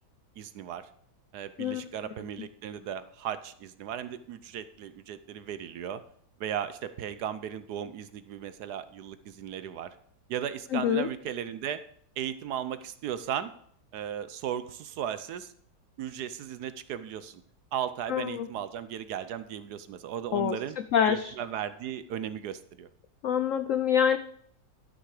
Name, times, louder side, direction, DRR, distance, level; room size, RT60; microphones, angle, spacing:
voice 1, 0.4-0.9 1.3-6.0 6.4-10.0 10.3-11.8 12.2-13.5 13.9-15.5 16.0-17.4 17.7-20.8 21.0-22.9, right 9 dB, 70° right, 12 dB, 1.1 m, -36 dB
voice 2, 10.7-11.1 18.1-18.5 20.3-20.6 20.9-21.3 23.2-24.2, left 8 dB, 80° left, 10 dB, 0.7 m, -25 dB
12.0 x 6.3 x 4.8 m, 0.64 s
omnidirectional pair, 2.0 m